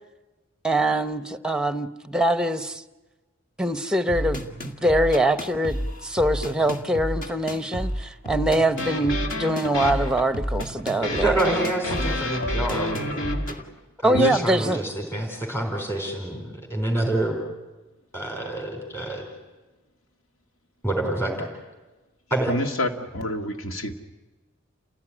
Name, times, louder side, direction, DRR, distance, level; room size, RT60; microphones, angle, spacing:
voice 1, 0.6-2.8 3.6-4.4 4.8-11.4 14.0-14.8, right 1 dB, 5° right, 11 dB, 0.8 m, -23 dB
sound 1, 4.1-13.6, equal, 40° left, 1.9 m, -32 dB
sound 2, 8.8-13.6, left 1 dB, 65° left, 2.4 m, -30 dB
voice 2, 11.0-13.2 13.5-13.6 14.0-17.4 18.1-19.2 20.8-21.5 22.3-22.5, right 1 dB, 10° left, 1 dB, 4.2 m, -27 dB
voice 3, 12.0-12.6 14.1-14.7 22.5-23.9, equal, 85° left, 5 dB, 2.1 m, -28 dB
29.5 x 16.5 x 9.9 m, 1.2 s
head